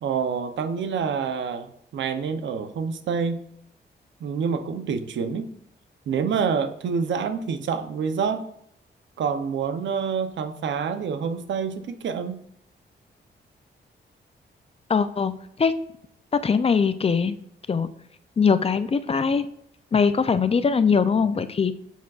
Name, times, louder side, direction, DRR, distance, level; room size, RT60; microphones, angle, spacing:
voice 1, 0.0-3.4 4.2-5.5 6.1-8.5 9.2-12.4, right 6 dB, 80° right, 9 dB, 0.7 m, -27 dB
voice 2, 14.9-15.3 15.6-15.7 16.3-17.4 17.7-17.9 18.4-19.5 19.9-21.8, left 5 dB, 30° left, 12 dB, 0.4 m, -21 dB
7.2 x 5.9 x 2.4 m, 0.70 s
cardioid pair, 100°, 19 cm